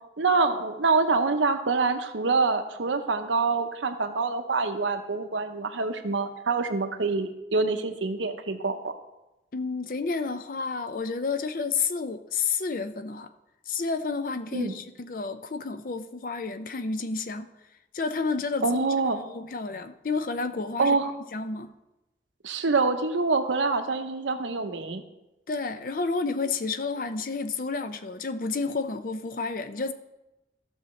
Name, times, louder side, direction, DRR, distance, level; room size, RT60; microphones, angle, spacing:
voice 1, 0.2-8.9 14.5-14.7 18.6-19.2 20.8-21.1 22.4-25.0, right 4 dB, 90° right, 7 dB, 0.8 m, -26 dB
voice 2, 9.5-13.3 13.7-17.5 17.9-18.8 19.2-21.0 21.3-21.7 25.5-29.9, left 4 dB, 45° left, 10 dB, 0.5 m, -30 dB
14.5 x 6.3 x 3.2 m, 0.98 s
head